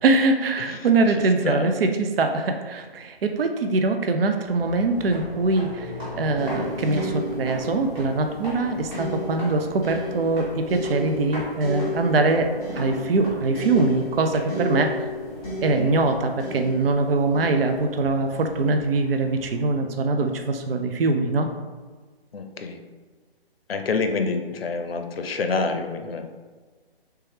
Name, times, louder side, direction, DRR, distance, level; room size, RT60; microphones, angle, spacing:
voice 1, 0.0-15.0 15.6-21.5, right 3 dB, 70° right, 6 dB, 0.5 m, -23 dB
voice 2, 0.6-1.8 15.7-16.0 22.3-22.8 23.7-26.3, left 4 dB, 70° left, 6 dB, 0.5 m, -28 dB
sound 1, 4.5-19.7, equal, 15° right, 0.8 m, -40 dB
sound 2, 6.4-19.4 20.3-20.4, left 1 dB, 10° left, 1.0 m, -33 dB
3.3 x 2.9 x 3.2 m, 1.4 s
figure-of-eight pair, 140°, 31 cm